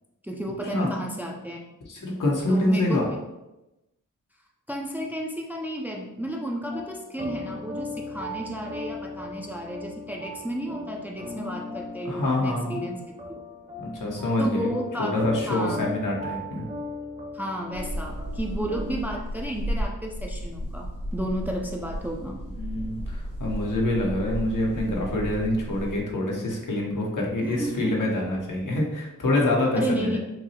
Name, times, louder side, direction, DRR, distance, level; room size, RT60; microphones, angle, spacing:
voice 1, 0.2-1.6 2.5-3.2 4.7-13.0 13.3-13.4 14.4-15.2 15.5-15.9 17.3-22.4 27.4-28.0 29.8-30.2, right 1 dB, 5° right, 0 dB, 0.5 m, -32 dB
voice 2, 1.9-3.0 12.0-12.8 13.8-14.7 15.0-16.7 22.5-30.2, left 1 dB, 75° left, -2 dB, 1.0 m, -26 dB
sound 1, 6.7-19.0, left 2 dB, 20° right, 0.9 m, -38 dB
sound 2, 17.7-26.0, equal, 75° right, 1.1 m, -34 dB
5.9 x 2.0 x 2.8 m, 0.96 s
wide cardioid pair, 80°, 32 cm